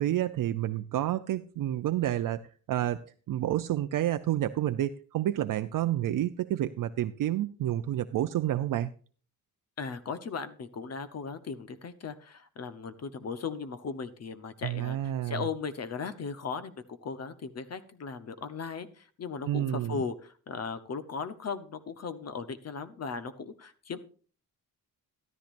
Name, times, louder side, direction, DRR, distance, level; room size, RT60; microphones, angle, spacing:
voice 1, 0.0-3.0 3.3-8.9 14.6-15.4 19.5-20.0, right 12 dB, 60° right, 10 dB, 0.5 m, -29 dB
voice 2, 9.8-24.0, left 5 dB, 45° left, 12 dB, 0.9 m, -37 dB
13.5 x 13.0 x 2.6 m, 0.40 s
wide cardioid pair, 160°, 36 cm